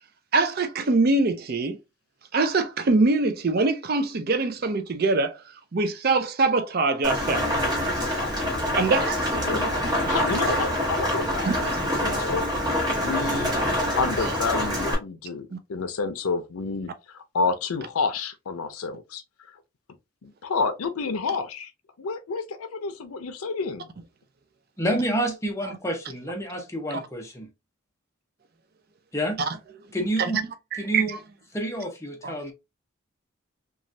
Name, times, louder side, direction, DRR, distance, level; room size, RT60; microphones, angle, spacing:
voice 1, 0.3-1.8 2.3-5.4 5.7-7.4 8.7-9.4 11.4-11.6 14.2-14.4 15.5-15.6 26.9-27.1 30.2-30.3 30.7-31.2 32.2-32.3, right 3 dB, 45° right, 0.4 m, -23 dB
Rain, 7.0-14.9, equal, 20° right, 1.0 m, -25 dB
voice 2, 9.4-9.7 10.1-12.4 12.9-13.6 14.0-19.2 20.2-21.7 22.0-23.9, left 4 dB, 90° left, 0.5 m, -29 dB
voice 3, 24.8-27.5 29.1-29.4 29.9-30.4 30.8-31.2 31.5-32.5, right 1 dB, 15° left, 0.7 m, -28 dB
3.0 x 2.3 x 2.6 m
head